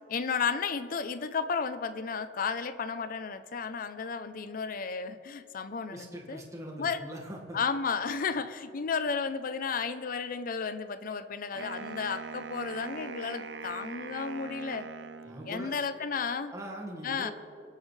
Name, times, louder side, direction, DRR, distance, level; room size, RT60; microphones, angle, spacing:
voice 1, 0.1-6.4 6.8-7.0 7.5-14.9 15.5-16.5 17.0-17.3, left 5 dB, 50° left, 11 dB, 0.5 m, -33 dB
voice 2, 5.9-7.6 15.2-15.8 16.5-17.3, right 1 dB, 20° right, -1 dB, 1.7 m, -42 dB
Wind instrument woodwind instrument, 11.6-15.8, right 5 dB, 85° right, 0.6 m, -42 dB
24.0 x 8.5 x 3.2 m, 2.4 s
head